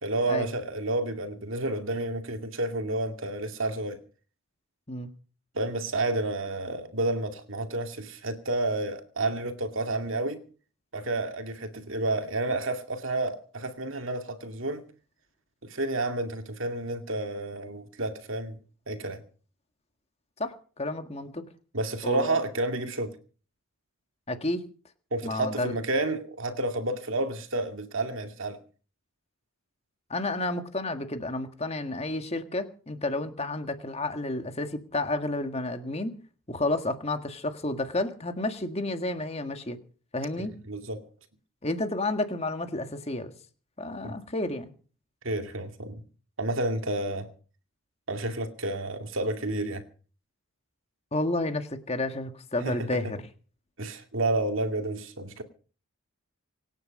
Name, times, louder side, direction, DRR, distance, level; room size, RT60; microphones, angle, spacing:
voice 1, 0.0-4.0 5.5-10.4 10.9-14.8 15.6-18.6 18.9-19.2 21.7-23.2 25.1-28.6 40.4-41.1 44.0-44.2 45.2-46.0 46.4-47.3 48.1-49.8 52.6-53.1 53.8-55.4, right 2 dB, 60° right, 2.3 m, -30 dB
voice 2, 20.4-21.4 22.0-22.3 24.3-24.6 25.2-25.8 30.1-36.1 36.5-39.8 40.1-40.5 41.6-43.3 43.8-44.7 51.1-53.2, left 2 dB, 30° left, 1.7 m, -31 dB
26.0 x 9.8 x 5.3 m
head